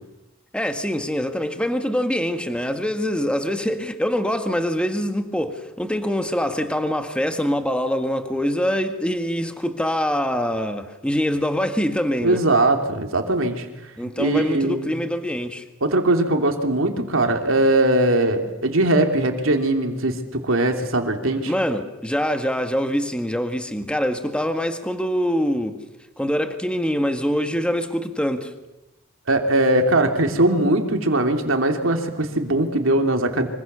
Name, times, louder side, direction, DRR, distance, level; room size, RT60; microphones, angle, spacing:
voice 1, 0.5-12.4 14.0-15.6 21.5-25.8 26.2-28.5, equal, 5° left, 7 dB, 1.7 m, -24 dB
voice 2, 12.2-13.6 14.0-15.0 15.8-21.5 29.3-33.5, right 2 dB, 80° right, 4 dB, 3.0 m, -20 dB
25.5 x 25.0 x 6.9 m, 1.0 s
head